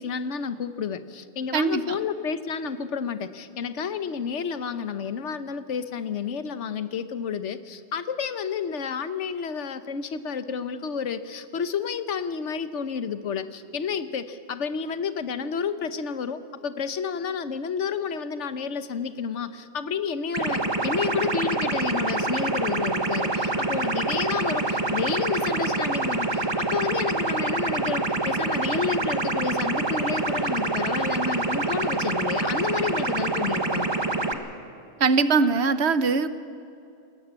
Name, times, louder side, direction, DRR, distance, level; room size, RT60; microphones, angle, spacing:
voice 1, 0.0-33.9, left 6 dB, 80° left, 12 dB, 1.3 m, -30 dB
voice 2, 1.5-2.0 35.0-36.3, right 4 dB, 65° right, 13 dB, 1.2 m, -21 dB
sound 1, 20.3-34.3, right 2 dB, 25° right, 1.3 m, -26 dB
20.5 x 18.0 x 8.2 m, 2.7 s
omnidirectional pair, 1.2 m